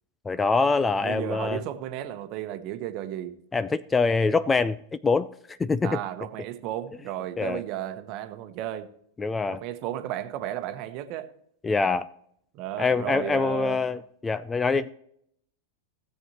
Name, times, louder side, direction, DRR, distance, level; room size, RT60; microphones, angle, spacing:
voice 1, 0.3-1.6 3.5-4.8 5.0-5.3 5.6-6.0 7.4-7.6 9.2-9.6 11.6-12.1 12.8-14.9, left 4 dB, 15° left, 0.4 m, -24 dB
voice 2, 1.0-3.3 5.8-8.9 9.5-11.3 12.5-13.8, right 12 dB, 40° right, 1.0 m, -34 dB
16.5 x 7.8 x 2.9 m
figure-of-eight pair, 90°, 0 cm